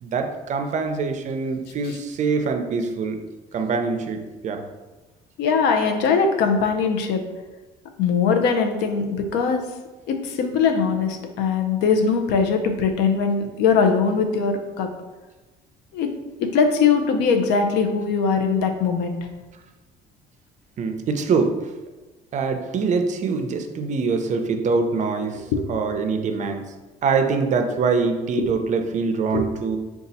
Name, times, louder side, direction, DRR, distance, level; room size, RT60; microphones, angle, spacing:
voice 1, 0.0-3.2 3.5-4.2 4.4-4.6 20.8-21.6 22.3-26.6 27.0-29.8, right 4 dB, 45° right, 6 dB, 0.5 m, -24 dB
voice 2, 5.4-7.2 8.0-9.6 10.1-14.9 15.9-16.1 16.4-19.2 25.5-25.6 28.3-28.5 29.3-29.4, left 5 dB, 90° left, 5 dB, 0.6 m, -21 dB
3.9 x 2.3 x 4.0 m, 1.2 s
cardioid pair, 110°, 17 cm